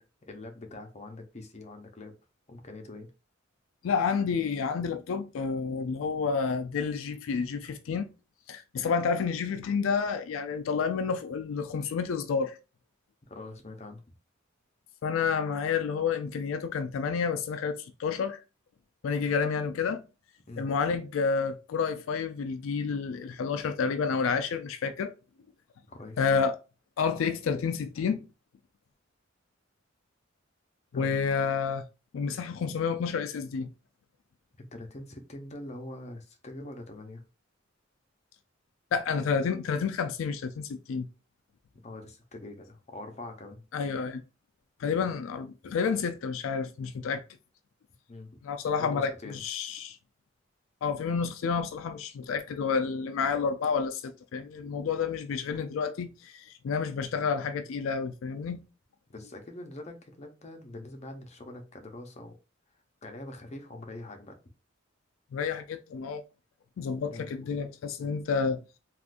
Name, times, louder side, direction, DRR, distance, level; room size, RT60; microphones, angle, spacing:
voice 1, 0.0-2.2 2.5-3.1 13.3-14.0 20.5-20.7 25.9-26.2 30.9-31.1 34.6-37.2 41.8-43.6 48.1-48.4 48.8-49.4 59.1-62.4 63.0-64.4 67.1-67.3, left 2 dB, 35° left, 0.6 m, -44 dB
voice 2, 3.8-8.1 8.5-12.6 15.0-18.4 19.0-20.0 20.6-25.1 26.2-26.6 27.0-28.3 30.9-31.8 32.1-33.7 38.9-41.1 43.7-44.2 44.8-47.2 48.4-50.0 50.8-58.6 65.3-66.2 66.8-68.6, left 5 dB, 85° left, 0.3 m, -30 dB
3.6 x 2.4 x 2.5 m
head